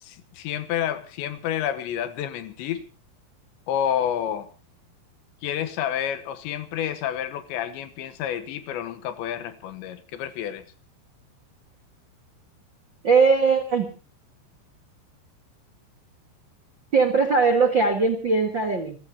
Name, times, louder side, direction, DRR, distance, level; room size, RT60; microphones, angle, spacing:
voice 1, 0.0-2.9 3.7-4.5 5.4-10.6, left 10 dB, 85° left, 3.5 m, -29 dB
voice 2, 13.0-13.9 16.9-19.0, right 4 dB, 60° right, 1.2 m, -20 dB
28.0 x 15.5 x 2.8 m
omnidirectional pair, 5.2 m